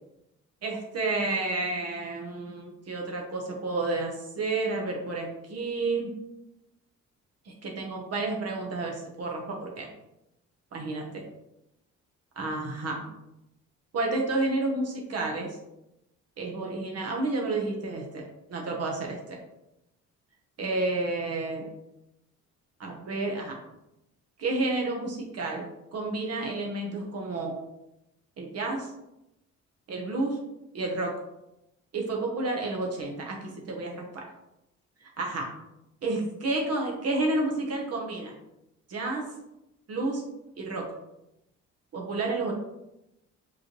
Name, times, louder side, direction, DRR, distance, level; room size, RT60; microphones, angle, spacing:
voice 1, 0.6-6.1 7.4-9.9 10.7-11.2 12.4-13.0 13.9-15.5 16.4-19.4 20.6-21.7 22.8-23.6 24.4-27.6 28.4-28.9 29.9-30.4 30.7-31.2 31.9-34.2 35.2-35.5 36.0-38.3 38.9-39.2 39.9-40.2 40.6-40.9 41.9-42.5, right 2 dB, 55° right, 0 dB, 1.1 m, -30 dB
5.3 x 3.1 x 3.1 m, 0.88 s
cardioid pair, 90°, 30 cm